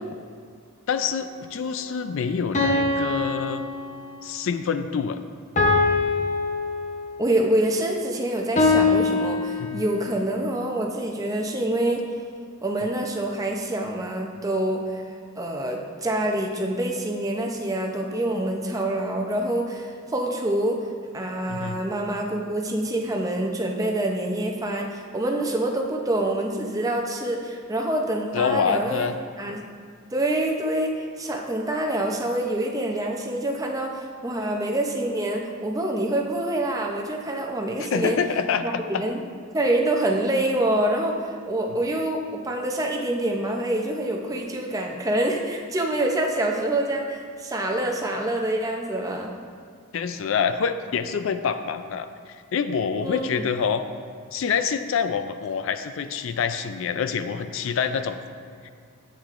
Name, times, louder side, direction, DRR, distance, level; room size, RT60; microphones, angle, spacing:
voice 1, 0.9-3.6 4.2-5.2 9.6-9.8 21.5-21.8 28.3-29.1 37.8-39.1 49.9-53.8 54.3-58.2, left 6 dB, 60° left, 10 dB, 0.3 m, -26 dB
sound 1, 0.9-1.1 2.5-4.3 5.6-7.3 8.6-10.1, left 3 dB, 35° left, 0.7 m, -23 dB
voice 2, 7.2-12.1 12.6-15.0 15.4-20.8 21.1-29.1 29.4-29.6 30.1-38.2 38.6-39.2 39.5-49.3 53.0-53.4, right 1 dB, 15° right, 1 dB, 0.6 m, -26 dB
10.5 x 8.2 x 2.5 m, 2.1 s
head